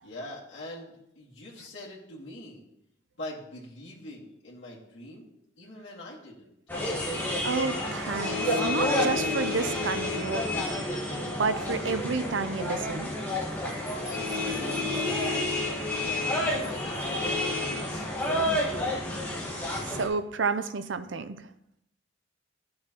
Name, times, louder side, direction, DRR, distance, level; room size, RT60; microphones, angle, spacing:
voice 1, 0.0-2.6 3.1-5.3 5.6-6.5 14.0-15.0 15.6-19.0, left 1 dB, 80° left, -6 dB, 2.1 m, -43 dB
sound 1, 6.7-20.1, left 1 dB, 10° left, 1.4 m, -29 dB
voice 2, 7.4-10.5 11.4-13.1 19.8-21.5, right 4 dB, 90° right, 11 dB, 0.6 m, -30 dB
13.0 x 6.4 x 3.0 m, 0.80 s
head